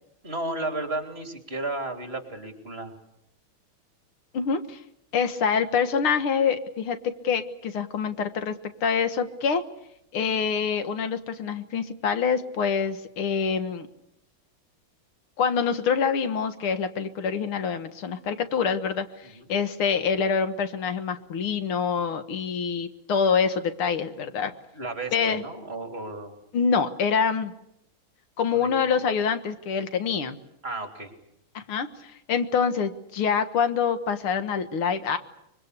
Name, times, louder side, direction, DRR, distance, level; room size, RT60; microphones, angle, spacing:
voice 1, 0.2-3.0 19.3-19.4 24.7-26.4 28.5-28.9 30.6-31.1, right 2 dB, 30° right, 5 dB, 3.6 m, -33 dB
voice 2, 4.3-4.8 5.1-8.6 8.8-9.6 10.1-13.9 15.4-24.5 25.1-25.4 26.5-27.5 28.4-30.4 31.5-35.2, left 6 dB, 85° left, 10 dB, 2.3 m, -26 dB
24.5 x 23.5 x 8.3 m, 0.79 s
omnidirectional pair, 2.3 m